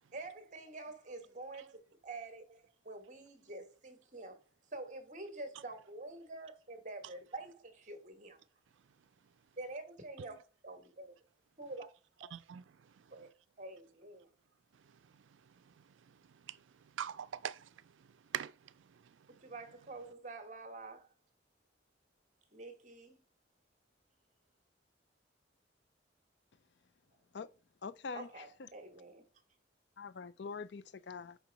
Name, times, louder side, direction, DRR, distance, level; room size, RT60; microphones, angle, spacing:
voice 1, 0.1-4.4 4.7-8.4 9.6-10.4 10.6-11.1 11.6-11.9 13.1-13.3 13.6-14.3 19.3-21.1 22.5-23.2 28.1-29.2, right 2 dB, 40° right, 1.2 m, -47 dB
voice 2, 8.7-9.6 10.2-10.3 12.3-13.3 14.7-19.6, right 9 dB, 85° right, 0.4 m, -47 dB
voice 3, 27.8-28.3 30.0-31.4, left 5 dB, 65° left, 0.5 m, -44 dB
5.8 x 4.5 x 5.1 m
head